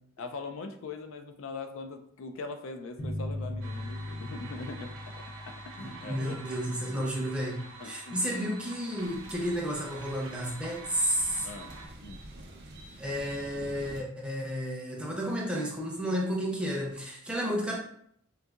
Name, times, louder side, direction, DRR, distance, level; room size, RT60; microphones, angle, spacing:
voice 1, 0.2-6.4 7.8-8.2 11.4-11.7 12.0-12.2, left 3 dB, 75° left, 7 dB, 0.4 m, -41 dB
sound 1, 3.0-8.1, left 1 dB, 35° left, 0.6 m, -40 dB
sound 2, 3.6-11.9, right 3 dB, 80° right, 0.8 m, -47 dB
voice 2, 5.8-11.5 13.0-17.8, equal, 5° right, -2 dB, 0.6 m, -32 dB
sound 3, 8.9-14.0, right 1 dB, 55° right, 0.5 m, -48 dB
3.8 x 2.6 x 2.3 m, 0.67 s
head